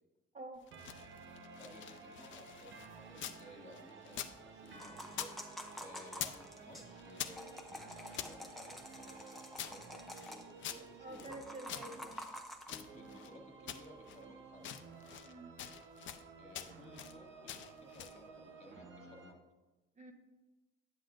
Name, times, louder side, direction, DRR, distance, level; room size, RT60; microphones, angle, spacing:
sound 1, 0.6-3.4 3.7-5.4 5.6-6.5 6.7-8.3 8.9-11.3 11.7-13.3 13.7-14.2 14.6-15.3 15.6-16.2 16.5-17.2 17.5-18.2, left 11 dB, 75° left, 0.5 m, -46 dB
sound 2, 0.7-19.3, right 5 dB, 75° right, 0.8 m, -54 dB
voice 1, 1.6-4.2 4.5-5.3 5.8-11.3 12.6-14.7 16.4-19.4, left 1 dB, 35° left, 1 dB, 1.7 m, -57 dB
sound 3, 4.8-6.9 7.2-10.4 11.2-12.7, equal, ahead, 0.9 m, -48 dB
voice 2, 11.0-12.3 15.2-15.5 20.0-20.1, right 1 dB, 35° right, 3 dB, 1.1 m, -48 dB
9.1 x 7.6 x 2.5 m, 1.2 s
cardioid pair, 90°, 20 cm